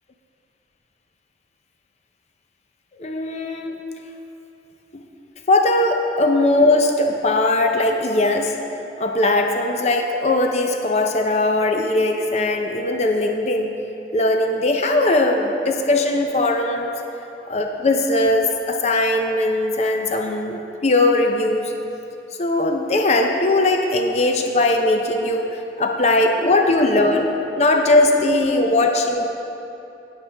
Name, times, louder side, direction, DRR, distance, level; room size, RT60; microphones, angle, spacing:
voice 1, 3.0-3.8 5.5-8.5 9.0-13.8 14.1-16.9 17.5-21.7 22.4-27.3 27.6-29.2, left 2 dB, 40° left, 3 dB, 0.6 m, -19 dB
16.5 x 6.7 x 3.4 m, 2.9 s
head